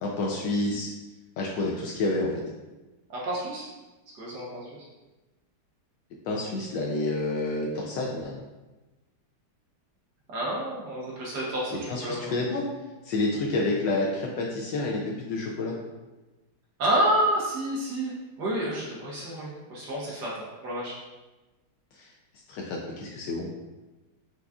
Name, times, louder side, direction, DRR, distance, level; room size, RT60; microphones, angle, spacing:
voice 1, 0.0-0.9 1.4-2.3 6.3-8.3 11.7-12.6 13.0-15.7 21.9-22.1 22.5-23.5, left 2 dB, 75° left, -2 dB, 1.1 m, -29 dB
voice 2, 3.1-3.7 4.2-4.8 10.3-12.3 16.8-18.1 18.4-20.9, right 1 dB, 60° right, -5 dB, 1.3 m, -29 dB
4.8 x 3.9 x 2.3 m, 1.1 s
omnidirectional pair, 2.3 m